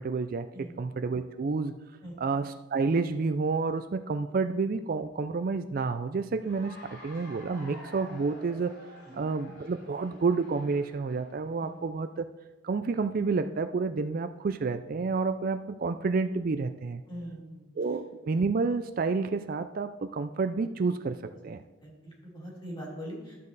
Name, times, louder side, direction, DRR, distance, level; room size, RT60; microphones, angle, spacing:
voice 1, 0.0-0.5 0.8-1.7 2.2-8.7 9.2-12.3 12.6-17.0 17.8-21.2 21.4-21.6, right 4 dB, 45° right, 9 dB, 0.4 m, -29 dB
voice 2, 0.5-0.8 2.0-2.2 9.0-9.2 11.6-11.7 17.1-17.6 21.3-21.4 21.8-23.4, equal, 25° left, -3 dB, 3.2 m, -42 dB
Cheering / Applause, 6.4-11.5, equal, 55° left, 3.2 m, -50 dB
12.5 x 7.5 x 4.0 m, 1.1 s
head